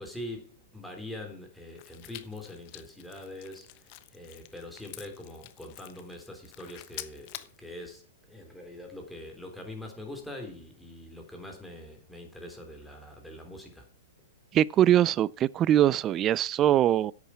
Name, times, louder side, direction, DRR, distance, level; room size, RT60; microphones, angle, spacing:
voice 1, 0.0-13.9, left 1 dB, 5° left, 3.5 m, -43 dB
sound 1, 1.8-7.6, left 17 dB, 45° left, 1.1 m, -47 dB
voice 2, 14.5-17.1, right 11 dB, 30° right, 0.4 m, -22 dB
10.5 x 8.4 x 5.8 m
hypercardioid pair, 115°, 0 cm